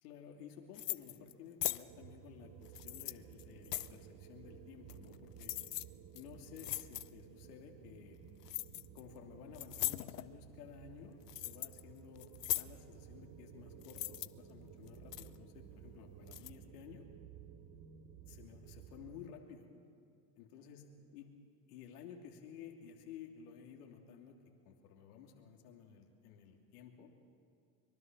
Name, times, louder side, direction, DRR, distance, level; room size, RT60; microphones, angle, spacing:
voice 1, 0.0-5.6 6.1-8.2 8.9-17.1 18.3-19.7 20.4-21.3 21.7-24.4 24.6-27.1, left 7 dB, 70° left, 3 dB, 3.1 m, -54 dB
sound 1, 0.7-1.3 1.6-1.8 2.7-4.0 4.9-5.1 5.4-5.8 6.2-6.3 6.6-7.1 8.4-9.0 9.5-10.3 10.9-11.8 12.2-12.7 13.8-14.3 14.9-15.4 16.3-16.5, left 15 dB, 90° left, 0.7 m, -39 dB
sound 2, 1.9-19.1, right 8 dB, 60° right, 2.3 m, -55 dB
24.0 x 23.5 x 6.3 m, 2.4 s
hypercardioid pair, 75°, 46 cm